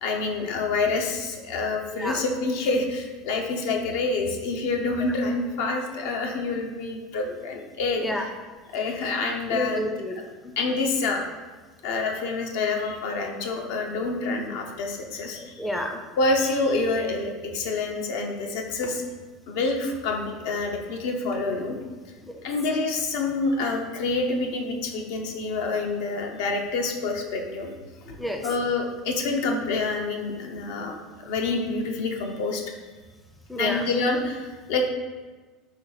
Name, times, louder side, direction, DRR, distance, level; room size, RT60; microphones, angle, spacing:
voice 1, 0.0-8.3 8.7-9.8 10.6-11.2 11.8-15.6 16.2-19.0 19.5-21.7 22.4-27.7 28.4-30.9 31.2-32.6 33.6-34.9, left 3 dB, 70° left, 2 dB, 0.7 m, -27 dB
voice 2, 9.5-10.1 10.4-10.5 15.6-16.0 22.3-22.4 28.1-28.5 33.5-33.9, equal, 5° left, 3 dB, 0.5 m, -29 dB
4.3 x 3.0 x 4.0 m, 1.3 s
supercardioid pair, 110°, 0 cm